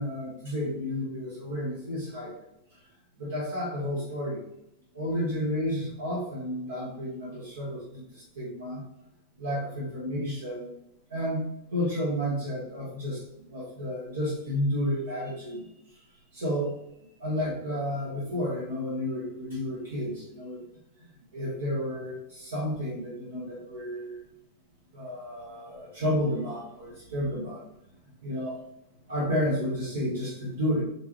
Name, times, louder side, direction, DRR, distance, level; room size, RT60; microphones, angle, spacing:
voice 1, 0.0-2.4 3.2-4.4 4.9-8.8 9.4-10.7 11.1-11.4 11.7-13.2 13.5-15.6 16.3-16.7 17.2-20.6 21.0-24.2 24.9-27.6 28.2-28.6 29.1-30.8, equal, 65° right, -5 dB, 1.4 m, -31 dB
5.1 x 3.2 x 3.1 m, 0.81 s
figure-of-eight pair, 90°, 0 cm